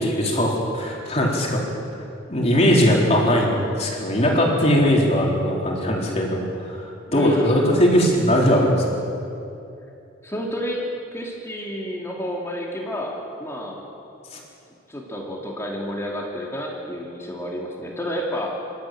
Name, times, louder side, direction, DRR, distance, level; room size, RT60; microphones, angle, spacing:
voice 1, 0.0-1.6 2.3-8.9 14.3-14.4, equal, 35° left, -2 dB, 3.9 m, -20 dB
voice 2, 7.1-7.8 10.2-10.8 11.1-13.8 14.9-18.5, equal, 15° left, -2 dB, 2.4 m, -30 dB
26.5 x 13.0 x 9.1 m, 2.7 s
head